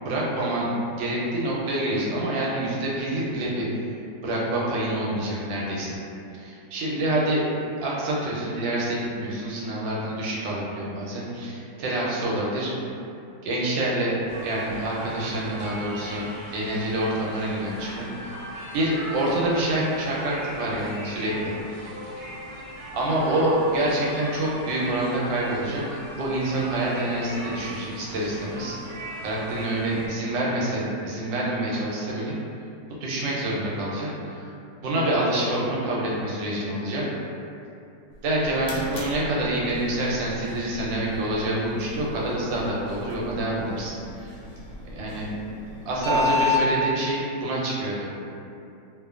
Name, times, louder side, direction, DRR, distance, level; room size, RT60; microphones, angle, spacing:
voice 1, 0.0-3.7 4.2-6.0 6.3-7.4 7.8-12.7 13.4-16.3 16.5-18.1 18.7-21.5 22.9-28.8 29.2-32.3 33.0-34.5 34.8-37.0 38.2-44.3 44.9-45.3 45.9-48.1, right 1 dB, 85° right, -5 dB, 1.3 m, -27 dB
sound 1, 14.3-30.1, right 1 dB, 65° right, 0.9 m, -39 dB
sound 2, 38.1-46.6, left 3 dB, 80° left, 1.3 m, -32 dB
2.9 x 2.1 x 2.3 m, 2.6 s
omnidirectional pair, 2.0 m